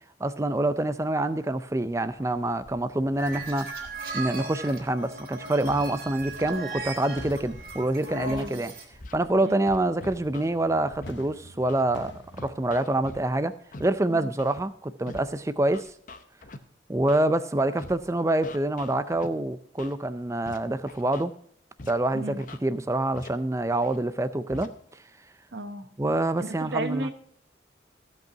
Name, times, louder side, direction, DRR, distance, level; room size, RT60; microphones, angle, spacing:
voice 1, 0.2-3.7 4.1-8.7 9.1-12.1 12.4-13.5 13.8-15.9 16.9-21.3 21.9-24.7 26.0-27.1, right 1 dB, 15° right, 0.4 m, -26 dB
sound 1, 2.1-13.1, left 1 dB, 70° left, 1.2 m, -49 dB
sound 2, 3.2-8.8, right 2 dB, 50° right, 2.3 m, -37 dB
Scratching (performance technique), 8.3-8.5 9.0-9.2 9.7-10.5 11.0-11.1 11.7-11.8 12.4-13.2 13.7-13.8 14.4-14.6 15.1-15.2 15.7-16.6 17.1-17.2 17.8-18.0 18.4-19.3 19.8-19.9 20.5-20.6 20.9-21.2 21.8-21.9 22.4-22.6 23.1-23.3 23.8-24.0 24.5-24.7, left 2 dB, 45° left, 0.7 m, -42 dB
voice 2, 8.3-8.6 9.4-9.6 14.1-14.3 22.1-22.4 25.5-25.9 26.4-27.1, right 2 dB, 65° right, 1.0 m, -34 dB
15.0 x 5.4 x 5.7 m
head